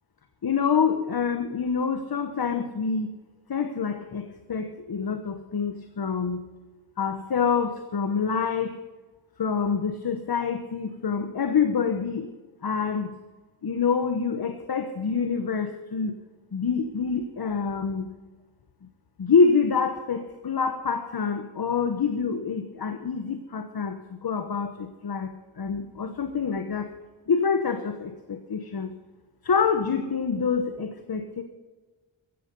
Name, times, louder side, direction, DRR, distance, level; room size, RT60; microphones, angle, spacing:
voice 1, 0.4-3.1 3.5-4.2 4.5-6.4 7.0-8.7 9.4-12.3 12.6-13.1 13.6-16.1 16.5-18.1 19.2-23.9 24.2-25.3 25.6-26.8 27.3-28.9 29.4-31.4, left 5 dB, 50° left, 7 dB, 1.2 m, -26 dB
15.0 x 14.5 x 5.4 m, 1.3 s
wide cardioid pair, 85°, 47 cm